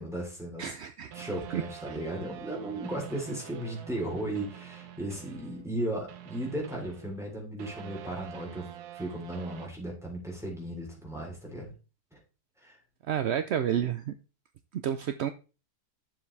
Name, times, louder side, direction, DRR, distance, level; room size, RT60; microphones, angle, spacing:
voice 1, 0.0-0.7 1.1-8.7 8.9-11.7 12.1-12.2 12.6-12.8, right 1 dB, ahead, -3 dB, 3.4 m, -36 dB
voice 2, 0.6-1.1 1.5-1.6 13.1-14.1 14.7-15.3, right 9 dB, 65° right, 10 dB, 0.6 m, -30 dB
sound 1, 1.1-5.8 6.1-9.7, right 11 dB, 85° right, 1.4 m, -46 dB
10.5 x 7.1 x 3.3 m, 0.33 s
omnidirectional pair, 1.6 m